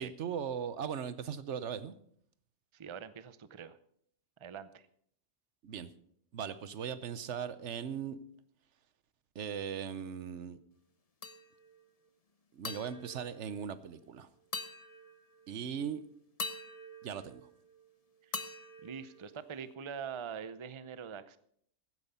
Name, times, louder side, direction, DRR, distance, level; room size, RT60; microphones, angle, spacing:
voice 1, 0.0-2.0 5.6-5.9 6.3-8.2 9.3-10.6 12.5-14.3 15.5-16.0 17.0-17.5, right 7 dB, 80° right, 14 dB, 1.1 m, -38 dB
voice 2, 2.7-3.8 4.4-4.9 18.2-18.4 18.8-21.4, right 7 dB, 35° right, 14 dB, 0.6 m, -44 dB
sound 1, 11.2-11.8 12.6-14.1 14.5-15.5 16.4-17.9 18.3-19.7, left 3 dB, 35° left, 0.8 m, -44 dB
15.5 x 9.5 x 5.5 m, 0.66 s
omnidirectional pair, 1.2 m